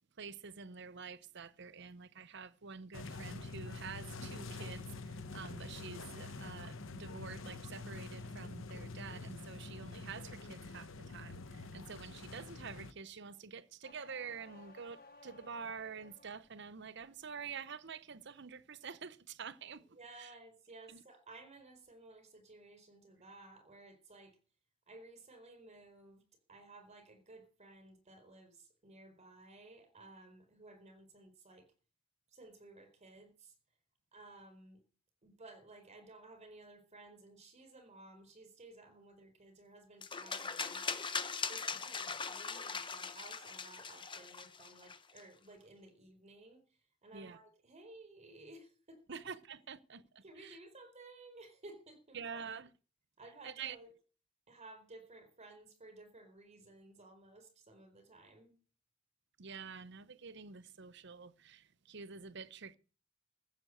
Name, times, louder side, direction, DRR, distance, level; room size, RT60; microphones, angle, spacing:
voice 1, 0.2-20.3 20.9-21.0 41.7-41.8 47.1-47.4 49.1-50.6 52.1-52.7 53.4-53.8 59.4-62.8, right 6 dB, 60° right, 0.8 m, -48 dB
sound 1, 2.9-12.9, left 3 dB, 75° left, 1.1 m, -46 dB
sound 2, 13.8-16.5 17.0-17.5, left 3 dB, 45° left, 2.2 m, -58 dB
voice 2, 19.8-24.4 24.9-26.2 26.5-31.7 32.3-33.5 34.1-34.8 35.2-40.9 41.4-49.2 50.2-52.4 53.2-53.9 54.5-58.6, right 2 dB, 35° right, 4.4 m, -56 dB
sound 3, 40.0-45.2, left 5 dB, 25° left, 1.0 m, -40 dB
15.0 x 7.2 x 7.9 m
head